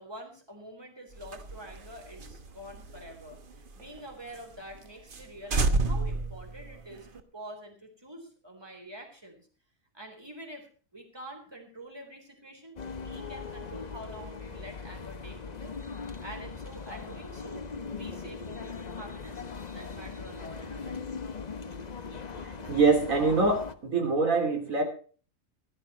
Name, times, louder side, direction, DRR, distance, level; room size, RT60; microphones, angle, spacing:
voice 1, 0.0-9.5 9.9-15.8 16.2-19.4 19.7-21.0, right 1 dB, 15° right, 3 dB, 3.9 m, -46 dB
sound 1, 1.1-4.0 4.3-4.4 4.7-4.8 5.1-5.2 5.5-7.2, right 3 dB, 40° right, 1.1 m, -30 dB
sound 2, 12.8-23.7, left 5 dB, 35° left, 0.9 m, -40 dB
voice 2, 22.4-24.8, right 4 dB, 65° right, 4 dB, 3.7 m, -24 dB
16.0 x 11.5 x 4.4 m, 0.40 s
omnidirectional pair, 1.5 m